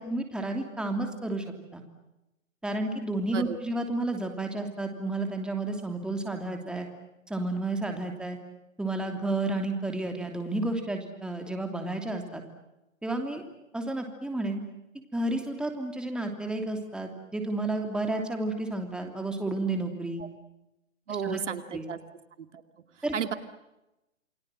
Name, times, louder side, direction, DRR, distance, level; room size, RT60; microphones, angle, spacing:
voice 1, 0.0-1.4 1.7-1.8 2.6-6.9 7.3-8.4 8.8-12.4 13.0-13.4 13.7-14.6 15.1-20.2 21.2-21.4 21.7-21.8 23.0-23.1, right 2 dB, ahead, 4 dB, 3.0 m, -31 dB
voice 2, 21.1-22.0 22.4-22.6 23.1-23.3, right 7 dB, 65° right, 9 dB, 2.6 m, -33 dB
29.0 x 23.5 x 7.7 m, 0.93 s
hypercardioid pair, 140°, 39 cm